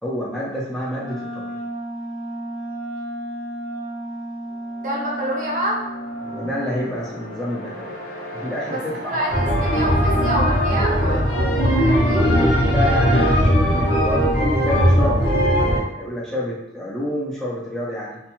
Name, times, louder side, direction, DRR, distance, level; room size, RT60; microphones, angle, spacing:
voice 1, 0.0-1.6 6.2-8.0 8.3-9.3 11.8-15.7 16.0-18.2, left 1 dB, 5° left, -6 dB, 0.5 m, -29 dB
Wind instrument woodwind instrument, 0.9-6.9, right 1 dB, 85° right, 0.7 m, -32 dB
sound 1, 4.5-10.4, right 1 dB, 60° left, 0.6 m, -36 dB
voice 2, 4.8-5.8 8.7-12.3, right 1 dB, 45° right, -3 dB, 0.6 m, -27 dB
sound 2, 9.3-15.8, equal, 90° left, 0.8 m, -18 dB
2.5 x 2.2 x 2.9 m, 0.89 s
head